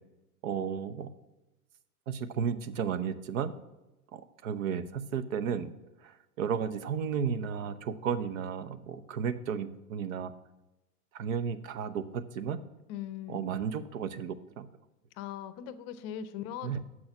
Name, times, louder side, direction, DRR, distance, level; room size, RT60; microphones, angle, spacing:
voice 1, 0.4-1.1 2.1-3.5 4.1-5.7 6.0-10.3 11.1-12.6 13.3-14.7 16.6-16.8, right 7 dB, 60° right, 12 dB, 0.9 m, -33 dB
voice 2, 12.9-13.4 15.2-16.8, left 10 dB, 35° left, 13 dB, 0.6 m, -40 dB
7.6 x 6.3 x 5.9 m, 1.0 s
hypercardioid pair, 110°, 46 cm